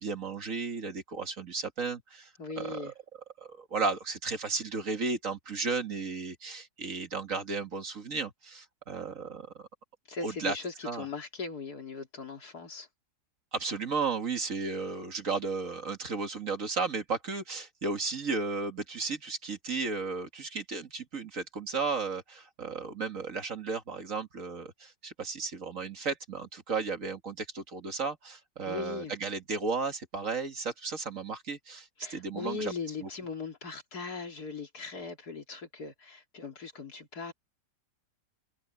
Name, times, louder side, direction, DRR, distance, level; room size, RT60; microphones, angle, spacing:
voice 1, 0.0-2.3 2.6-2.9 3.4-9.7 10.2-10.6 10.8-11.1 13.5-32.7 33.0-33.1, right 4 dB, 50° right, 2.2 m, -34 dB
voice 2, 2.4-2.9 10.1-12.9 28.6-29.1 32.0-37.3, left 4 dB, 65° left, 3.2 m, -39 dB
omnidirectional pair, 1.8 m